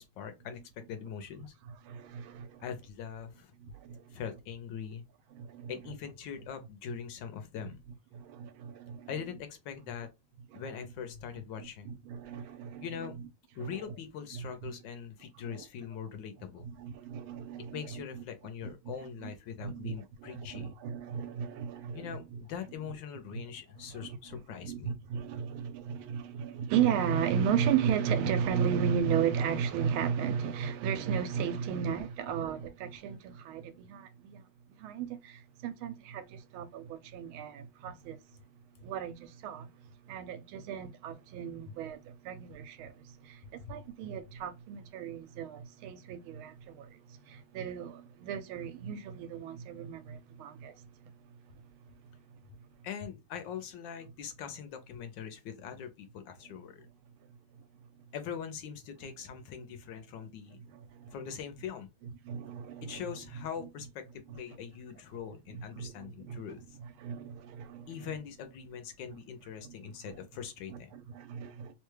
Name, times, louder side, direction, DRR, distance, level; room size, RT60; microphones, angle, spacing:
voice 1, 0.0-1.5 2.6-3.5 4.1-5.0 5.7-7.8 9.1-10.1 10.5-11.9 12.8-13.2 13.5-16.7 17.7-20.7 21.9-24.9 43.6-43.7 52.8-56.9 58.1-60.6 61.1-61.9 62.8-66.8 67.9-70.9, left 7 dB, 75° left, 1.2 m, -42 dB
voice 2, 1.8-2.6 3.6-4.2 5.3-5.7 8.1-9.1 10.5-10.6 11.6-12.9 13.6-13.8 14.3-14.8 15.5-15.6 16.6-18.2 18.6-18.9 19.2-19.3 19.6-19.9 20.2-22.4 23.9-24.2 24.6-34.4 34.8-38.2 38.8-39.7 40.1-47.0 47.3-50.9 60.7-61.1 62.2-63.0 65.5-66.4 67.0-68.0 69.6-69.7 70.7-71.7, right 8 dB, 85° right, 1.4 m, -35 dB
3.3 x 2.2 x 3.1 m
omnidirectional pair, 2.2 m